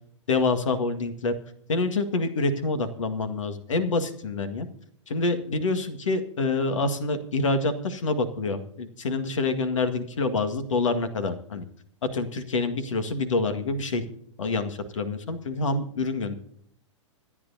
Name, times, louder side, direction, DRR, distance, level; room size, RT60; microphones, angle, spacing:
voice 1, 0.3-1.3 1.7-4.7 5.1-11.7 12.1-14.0 14.4-16.3, left 3 dB, 75° left, 8 dB, 1.8 m, -27 dB
25.5 x 9.8 x 2.8 m, 0.67 s
hypercardioid pair, 110°, 16 cm